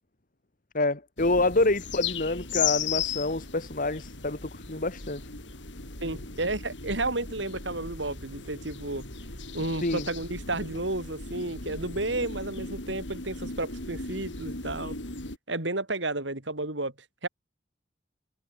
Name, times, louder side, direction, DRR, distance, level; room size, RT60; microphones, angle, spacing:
voice 1, 0.7-5.2 9.8-10.0, left 2 dB, 50° left, 2.5 m, -27 dB
sound 1, 1.2-15.4, left 6 dB, 75° left, 5.2 m, -36 dB
voice 2, 6.0-9.0 9.5-15.0 15.5-16.9 17.2-17.3, right 2 dB, 75° right, 5.5 m, -32 dB
head